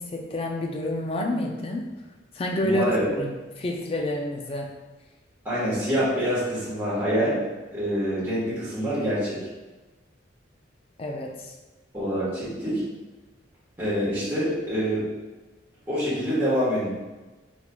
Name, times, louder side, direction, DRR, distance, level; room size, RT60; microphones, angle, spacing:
voice 1, 0.0-1.9 2.3-2.9 3.2-4.8 11.0-11.5, left 1 dB, 30° left, 1 dB, 0.4 m, -29 dB
voice 2, 2.6-3.1 5.4-7.4 7.7-9.4 11.9-12.8 13.8-15.1 15.9-16.9, equal, 10° right, -12 dB, 1.2 m, -26 dB
4.0 x 3.0 x 2.2 m, 1.2 s
head